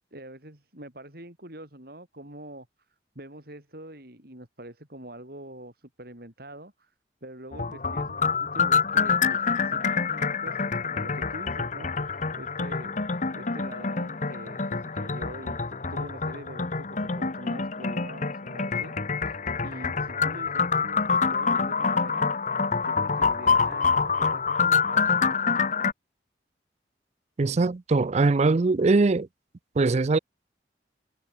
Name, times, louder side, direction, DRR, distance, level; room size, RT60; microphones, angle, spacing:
voice 1, 0.1-2.7 3.1-6.9 7.2-13.0 13.3-22.3 22.8-25.4, right 1 dB, 55° right, 5.9 m, -44 dB
sound 1, 7.5-25.9, left 5 dB, 45° left, 1.1 m, -26 dB
voice 2, 27.4-29.3 29.8-30.2, right 3 dB, 40° right, 0.4 m, -21 dB
open air
head